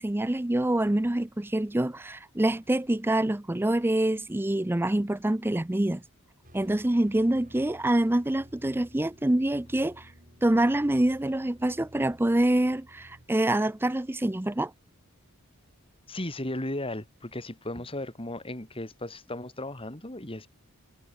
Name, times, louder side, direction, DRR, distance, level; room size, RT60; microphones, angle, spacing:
voice 1, 0.0-6.0 6.5-10.1 10.4-14.7, right 1 dB, 10° right, 0.5 m, -26 dB
sound 1, 6.4-13.3, equal, 40° right, 7.3 m, -54 dB
voice 2, 16.1-20.5, left 1 dB, 25° left, 3.1 m, -35 dB
head